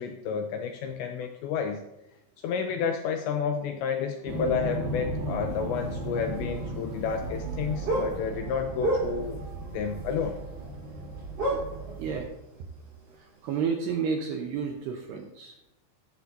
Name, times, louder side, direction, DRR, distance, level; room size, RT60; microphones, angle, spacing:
voice 1, 0.0-1.8 2.4-9.4 9.7-10.4, left 6 dB, 85° left, 5 dB, 2.6 m, -30 dB
sound 1, 4.3-12.2, right 2 dB, 45° right, 3.5 m, -36 dB
sound 2, 6.2-7.1 7.3-9.5 10.3-10.7 10.9-11.1 11.4-12.3 12.6-12.7 13.3-13.4, right 2 dB, 25° right, 3.6 m, -29 dB
voice 2, 12.0-12.3 13.4-15.7, right 6 dB, 80° right, 2 dB, 2.5 m, -31 dB
14.5 x 12.0 x 2.8 m, 0.91 s
omnidirectional pair, 5.9 m